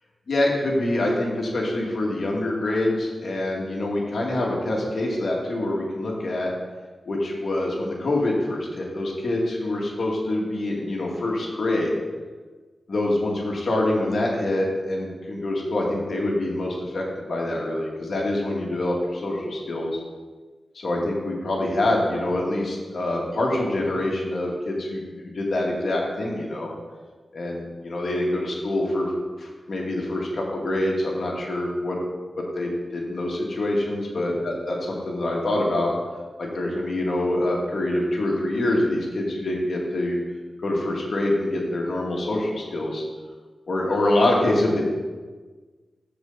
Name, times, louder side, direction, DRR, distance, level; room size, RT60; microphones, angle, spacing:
voice 1, 0.3-6.5 7.1-11.9 12.9-20.0 20.7-26.7 27.3-29.1 29.4-32.0 32.4-35.9 36.4-40.2 40.6-43.0 43.7-44.8, left 1 dB, 60° left, -2 dB, 2.1 m, -25 dB
14.0 x 5.1 x 4.0 m, 1.4 s
wide cardioid pair, 110°, 0 cm